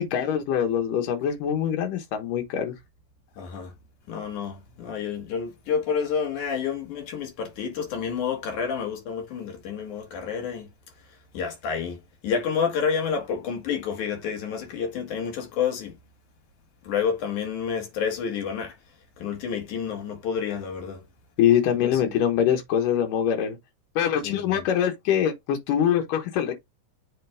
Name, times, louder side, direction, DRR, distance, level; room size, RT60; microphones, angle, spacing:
voice 1, 0.0-2.7 21.4-23.6 24.0-26.5, left 9 dB, 85° left, 2.9 m, -24 dB
voice 2, 3.4-3.7 4.1-10.7 11.3-15.9 16.8-18.8 19.2-21.0 21.8-22.1 24.2-24.6, left 6 dB, 70° left, 3.1 m, -29 dB
7.5 x 3.5 x 3.5 m
omnidirectional pair, 3.7 m